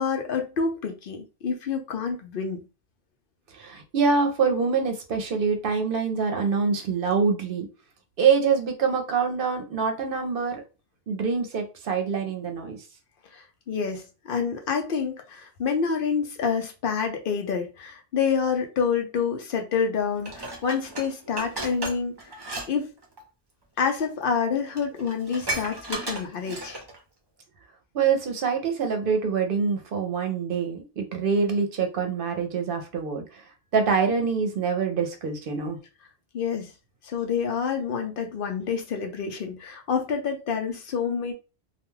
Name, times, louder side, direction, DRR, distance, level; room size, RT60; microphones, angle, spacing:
voice 1, 0.0-2.6 13.3-22.2 22.7-22.9 23.8-26.8 36.3-36.7 37.0-41.3, left 6 dB, 65° left, 0.7 m, -28 dB
voice 2, 3.5-7.7 8.2-10.6 11.1-12.8 27.9-33.4 33.7-35.8, right 5 dB, 65° right, 0.8 m, -25 dB
Dishes pots and pans, 20.2-22.7 23.0-23.2 24.0-24.1 24.5-24.6 24.8-27.0 27.4-27.5, right 2 dB, 30° right, 0.6 m, -34 dB
2.3 x 2.2 x 3.1 m
omnidirectional pair, 1.1 m